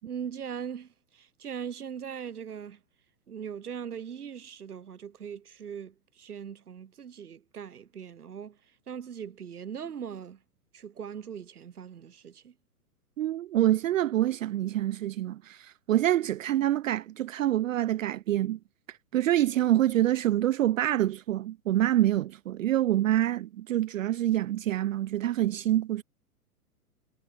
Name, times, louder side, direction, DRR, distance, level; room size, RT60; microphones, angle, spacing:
voice 1, 0.0-2.8 3.3-8.6 8.9-10.4 10.7-12.5, right 8 dB, 75° right, 2.3 m, -40 dB
voice 2, 13.2-18.6 19.1-26.0, right 13 dB, 60° right, 0.6 m, -26 dB
figure-of-eight pair, 120°, 46 cm